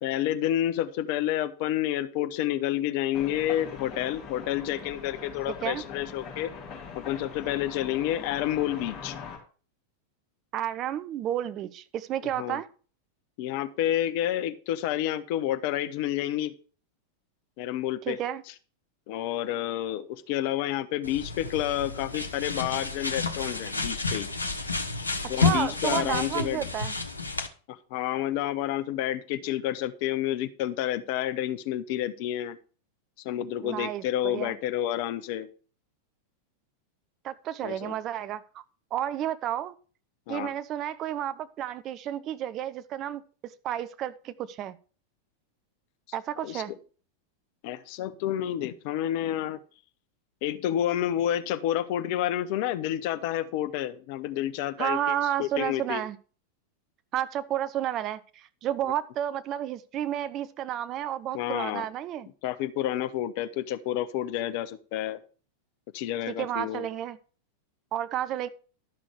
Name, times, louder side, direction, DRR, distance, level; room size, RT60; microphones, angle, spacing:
voice 1, 0.0-6.5 6.9-9.2 12.4-12.6 13.4-16.5 17.6-18.2 19.1-24.3 25.3-26.6 27.7-32.6 33.2-35.5 37.6-37.9 40.3-40.5 46.4-46.6 47.6-49.6 50.4-56.0 61.3-61.9 62.4-65.2 65.9-66.9, left 12 dB, 45° left, 0.8 m, -29 dB
sound 1, 3.1-9.4, left 5 dB, 30° left, 3.5 m, -42 dB
voice 2, 10.5-12.7 18.0-18.4 25.4-26.9 33.6-34.5 37.2-38.6 38.9-39.8 40.3-44.8 46.1-46.7 54.8-56.2 57.1-62.3 66.3-67.2 67.9-68.5, right 11 dB, 35° right, 0.7 m, -31 dB
sound 2, 21.0-27.5, left 4 dB, 80° left, 1.1 m, -30 dB
12.0 x 6.3 x 4.7 m
figure-of-eight pair, 90°, 0 cm